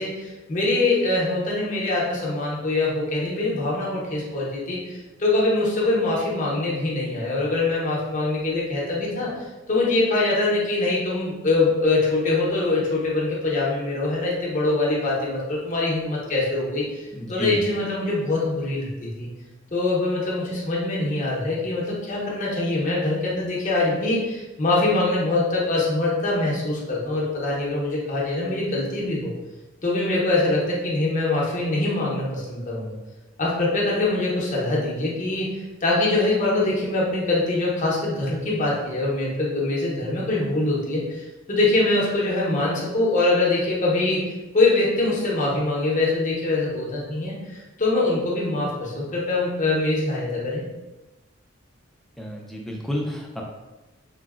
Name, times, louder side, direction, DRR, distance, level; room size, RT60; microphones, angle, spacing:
voice 1, 0.0-9.3 9.7-16.9 17.3-19.3 19.7-29.3 29.8-32.9 33.4-44.2 44.5-50.6, left 2 dB, 40° left, -4 dB, 0.7 m, -23 dB
voice 2, 17.1-17.6 52.2-53.4, left 1 dB, ahead, -1 dB, 0.3 m, -30 dB
3.8 x 2.0 x 2.3 m, 1.1 s
head